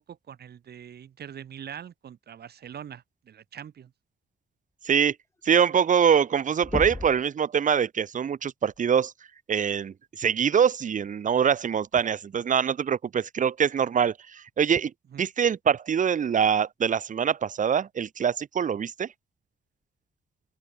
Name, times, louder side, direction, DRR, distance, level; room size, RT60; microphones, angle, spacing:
voice 1, 0.0-3.9 15.1-15.3, right 9 dB, 65° right, 7.1 m, -43 dB
voice 2, 5.4-9.1 9.5-14.9 15.2-19.1, right 7 dB, 45° right, 1.2 m, -24 dB
sound 1, 6.3-6.4 6.6-7.3 9.0-9.1 10.9-11.1 11.9-12.0, left 2 dB, 15° left, 5.2 m, -33 dB
open air
wide cardioid pair, 145°, 18 cm